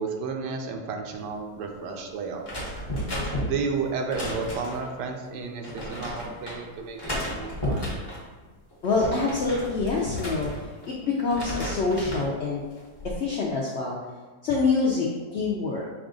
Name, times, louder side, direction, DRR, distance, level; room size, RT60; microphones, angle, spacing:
voice 1, 0.0-2.5 3.4-7.9, right 4 dB, 90° right, 3 dB, 1.2 m, -32 dB
sound 1, 2.4-4.9 5.6-6.6 7.0-8.2 8.7-10.9 11.2-12.3 12.8-13.2, equal, 20° left, 0.7 m, -33 dB
voice 2, 8.8-10.5 10.9-12.6 13.2-14.0 14.4-15.8, left 4 dB, 70° left, -3 dB, 0.6 m, -26 dB
5.5 x 2.4 x 3.7 m, 1.4 s
omnidirectional pair, 1.7 m